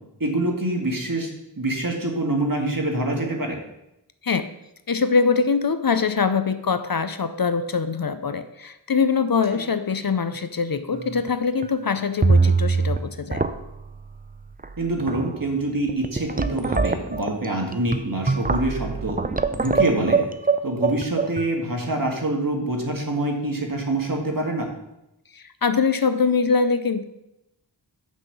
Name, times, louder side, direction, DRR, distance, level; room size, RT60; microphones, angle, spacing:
voice 1, 0.2-1.3 1.6-3.6 14.8-19.2 19.6-20.2 20.6-24.7, right 1 dB, 50° right, 1 dB, 1.9 m, -25 dB
voice 2, 4.9-13.4 25.3-27.0, left 5 dB, 55° left, 11 dB, 0.6 m, -23 dB
sound 1, 10.9-11.3 11.6-11.7 12.2-13.0 13.3-13.9 14.6-14.7 15.0-15.4 15.9-21.4, right 4 dB, 20° right, 0.5 m, -22 dB
6.3 x 5.6 x 6.8 m, 0.88 s
wide cardioid pair, 40°, 44 cm